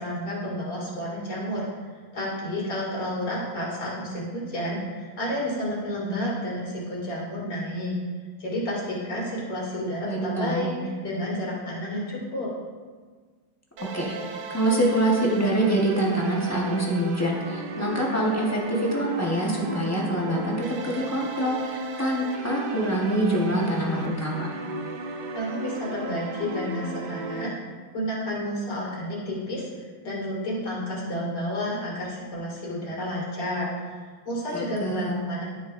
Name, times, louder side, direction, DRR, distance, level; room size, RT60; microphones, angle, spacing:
voice 1, 0.0-1.8 2.1-7.9 8.4-12.5 25.3-27.5 27.9-33.9 34.2-35.4, equal, 55° left, -5 dB, 2.9 m, -31 dB
voice 2, 10.0-10.7 13.8-14.1 14.5-24.5 34.5-35.2, right 1 dB, 15° left, -3 dB, 0.6 m, -25 dB
sound 1, 13.8-27.5, right 3 dB, 65° right, 1.2 m, -35 dB
12.5 x 6.6 x 2.5 m, 1.5 s
omnidirectional pair, 2.3 m